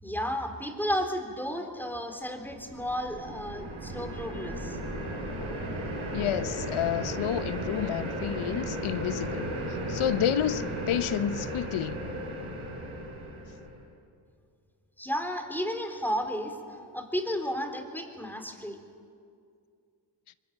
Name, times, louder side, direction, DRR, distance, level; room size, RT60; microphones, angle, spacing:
voice 1, 0.0-4.8 15.0-18.8, equal, 5° left, 4.0 m, -33 dB
sound 1, 2.4-13.8, right 1 dB, 75° right, 6.4 m, -35 dB
voice 2, 6.1-9.5 9.9-12.1, left 10 dB, 75° left, 0.9 m, -30 dB
23.5 x 21.0 x 9.1 m
cardioid pair, 55°, 50 cm